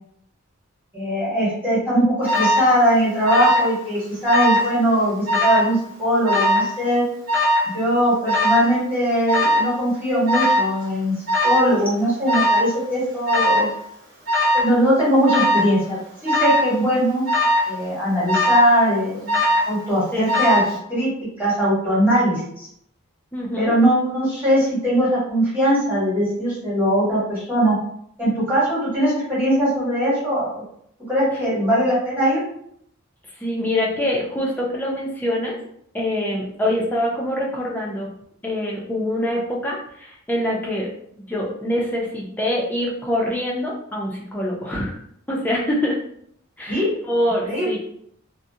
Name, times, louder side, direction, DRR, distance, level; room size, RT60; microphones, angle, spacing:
voice 1, 0.9-7.0 7.6-11.1 11.4-13.7 14.5-17.2 17.7-20.6 20.9-21.1 21.4-22.7 23.6-27.7 28.2-30.6 31.1-32.4 46.7-46.9 47.4-47.8, equal, 10° right, -10 dB, 1.2 m, -20 dB
Alarm, 2.3-2.7 3.2-3.7 4.0-4.7 5.3-5.7 6.3-6.7 7.3-7.7 8.3-8.7 9.3-9.7 10.3-10.7 11.3-11.7 12.3-12.7 13.3-13.7 14.3-14.7 15.3-15.7 16.3-16.7 17.3-17.7 18.3-18.7 19.3-19.8 20.3-20.7, left 1 dB, 45° right, 1.0 m, -19 dB
voice 2, 23.3-23.7 33.4-35.6 35.9-38.1 38.4-40.9 41.1-45.0 45.3-46.0 46.6-47.8, left 1 dB, 10° left, -3 dB, 0.5 m, -24 dB
2.5 x 2.1 x 2.7 m, 0.69 s
head